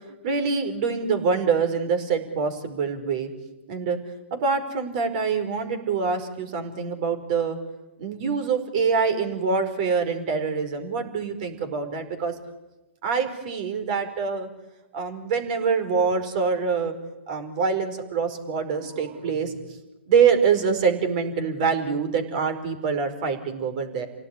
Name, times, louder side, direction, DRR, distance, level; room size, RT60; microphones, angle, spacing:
voice 1, 0.2-3.3 3.7-4.0 4.3-7.6 8.0-12.3 13.0-14.5 14.9-16.9 17.3-19.5 20.1-24.1, right 5 dB, 40° right, 8 dB, 4.8 m, -25 dB
30.0 x 17.5 x 9.9 m, 1.0 s
figure-of-eight pair, 125°, 6 cm